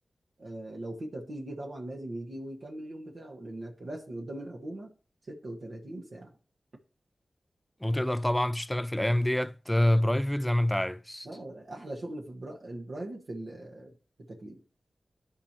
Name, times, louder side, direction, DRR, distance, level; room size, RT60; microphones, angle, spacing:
voice 1, 0.4-4.9 5.3-6.3 11.2-14.6, right 1 dB, 60° right, 1.4 m, -40 dB
voice 2, 7.8-11.3, left 1 dB, 5° left, 0.3 m, -26 dB
15.0 x 5.0 x 2.9 m
wide cardioid pair, 100°, 0 cm